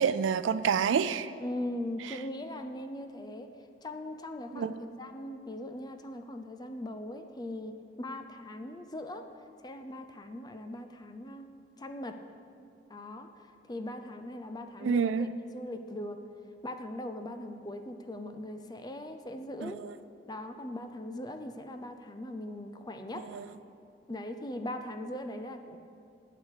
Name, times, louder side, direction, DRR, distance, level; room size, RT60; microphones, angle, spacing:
voice 1, 0.0-1.3 2.1-2.2 4.5-5.0 14.8-15.3 19.6-19.9 23.3-23.5, right 6 dB, 85° right, 15 dB, 0.4 m, -28 dB
voice 2, 1.4-3.5 3.8-9.3 9.6-11.5 11.8-12.2 12.9-13.3 13.7-15.3 15.5-16.2 16.6-19.8 20.3-23.3 24.1-25.8, left 1 dB, 20° left, 7 dB, 0.5 m, -40 dB
8.7 x 8.0 x 6.5 m, 2.4 s
head